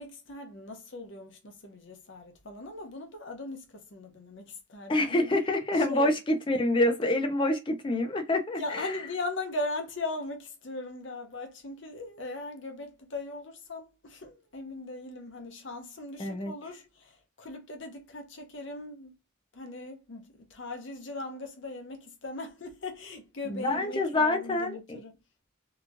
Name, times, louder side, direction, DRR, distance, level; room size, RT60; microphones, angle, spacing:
voice 1, 0.0-5.3 5.7-6.1 8.6-19.1 19.5-25.2, left 2 dB, 60° left, 0.8 m, -39 dB
voice 2, 4.9-8.9 16.2-16.5 23.5-25.0, left 1 dB, 25° left, 0.5 m, -27 dB
2.9 x 2.4 x 2.4 m
head